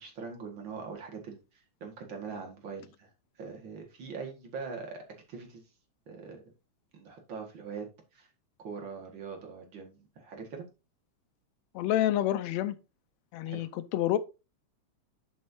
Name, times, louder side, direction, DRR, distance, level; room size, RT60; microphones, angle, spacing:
voice 1, 0.0-3.1 3.4-5.6 6.1-6.4 6.9-7.9 8.1-8.3 8.6-10.6 13.5-13.7, right 5 dB, 45° right, 2.4 m, -42 dB
voice 2, 11.8-12.8 13.3-14.2, left 13 dB, 75° left, 1.8 m, -28 dB
11.5 x 5.6 x 2.8 m
omnidirectional pair, 3.3 m